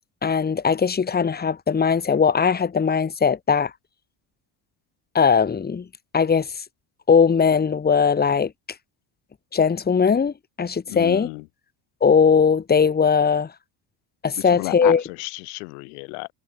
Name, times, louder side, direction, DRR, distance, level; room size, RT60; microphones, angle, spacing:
voice 1, 0.2-3.7 5.1-5.9 6.1-6.5 7.1-8.5 9.5-11.3 12.0-13.5 14.2-15.0, left 6 dB, 20° left, 1.5 m, -19 dB
voice 2, 10.9-11.5 14.4-16.3, left 39 dB, 85° left, 1.4 m, -32 dB
supercardioid pair, 95°, 43 cm